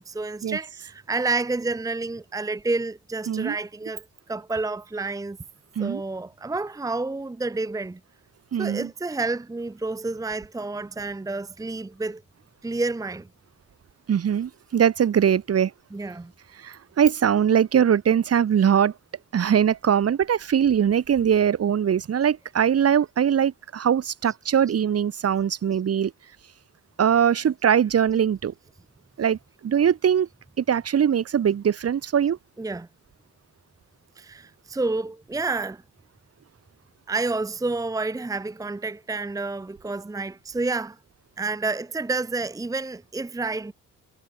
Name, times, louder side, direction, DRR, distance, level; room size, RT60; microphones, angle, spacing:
voice 1, 0.0-5.4 5.8-8.0 8.6-12.2 12.6-13.3 15.9-16.3 22.6-22.7 32.6-32.9 34.2-35.8 37.1-41.0 41.4-43.7, right 3 dB, 10° right, 0.9 m, -29 dB
voice 2, 8.5-8.9 14.1-15.7 16.6-18.9 19.3-26.1 27.0-28.5 29.2-30.3 30.6-32.4, right 8 dB, 55° right, 2.8 m, -21 dB
cardioid pair, 90°, 30 cm